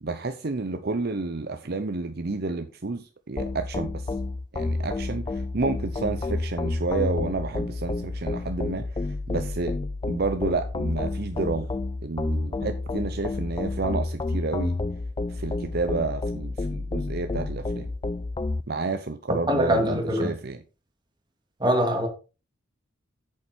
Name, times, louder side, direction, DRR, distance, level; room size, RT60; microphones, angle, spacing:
voice 1, 0.0-4.1 4.5-9.8 10.1-11.7 12.0-14.8 15.3-17.9 18.7-20.6, right 3 dB, 55° right, 0.7 m, -30 dB
sound 1, 3.4-18.6, left 2 dB, 20° left, 0.4 m, -30 dB
voice 2, 19.5-20.3 21.6-22.1, equal, 20° right, 2.4 m, -23 dB
8.7 x 7.3 x 4.3 m
head